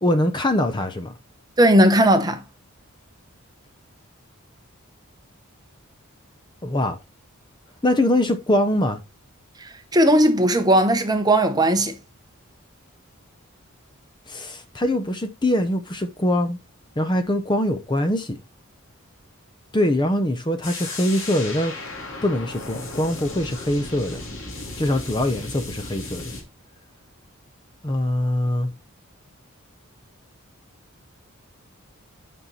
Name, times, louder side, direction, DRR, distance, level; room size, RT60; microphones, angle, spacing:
voice 1, 0.0-1.1 6.6-7.0 7.8-9.0 14.3-16.6 17.0-18.4 19.7-21.7 22.2-24.2 24.8-26.4 27.8-28.7, left 1 dB, 20° left, 0.8 m, -23 dB
voice 2, 1.6-2.4 9.9-11.9, right 1 dB, 20° right, 1.0 m, -17 dB
sound 1, 20.6-26.4, left 2 dB, 60° left, 3.0 m, -35 dB
8.9 x 5.5 x 4.1 m
head